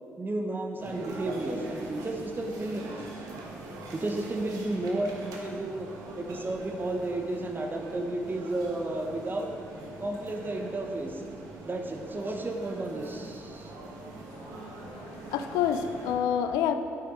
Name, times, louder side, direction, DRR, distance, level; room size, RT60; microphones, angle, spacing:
voice 1, 0.2-2.8 3.9-5.9 6.2-9.5 10.0-11.2 11.6-13.7, right 2 dB, 35° right, 3 dB, 0.8 m, -32 dB
sound 1, 0.8-16.1, right 2 dB, 75° right, 1.1 m, -43 dB
voice 2, 14.3-16.7, left 8 dB, 90° left, 9 dB, 0.4 m, -29 dB
8.5 x 5.9 x 3.6 m, 2.6 s
supercardioid pair, 55°, 6 cm